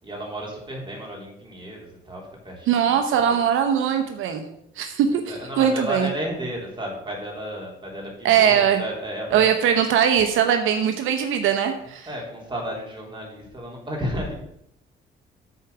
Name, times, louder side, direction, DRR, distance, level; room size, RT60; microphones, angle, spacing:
voice 1, 0.0-3.4 5.1-9.5 12.1-14.4, equal, 25° right, -2 dB, 3.7 m, -33 dB
voice 2, 2.7-4.4 4.8-5.2 5.6-6.1 8.2-8.8 9.3-12.1, right 8 dB, 85° right, 6 dB, 0.8 m, -20 dB
8.2 x 4.8 x 6.9 m, 0.77 s
cardioid pair, 90°, 20 cm